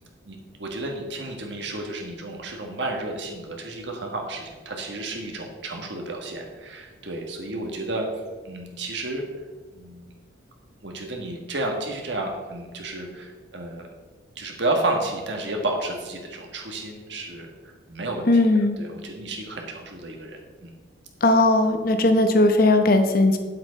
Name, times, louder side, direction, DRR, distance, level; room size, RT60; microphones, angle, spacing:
voice 1, 0.3-8.1 8.4-9.3 9.7-10.1 10.8-13.9 14.4-18.4 18.8-20.7, right 2 dB, 60° right, 1 dB, 1.6 m, -31 dB
voice 2, 18.3-18.8 21.2-23.4, left 2 dB, 45° left, 7 dB, 0.9 m, -18 dB
9.6 x 7.6 x 4.1 m, 1.4 s
head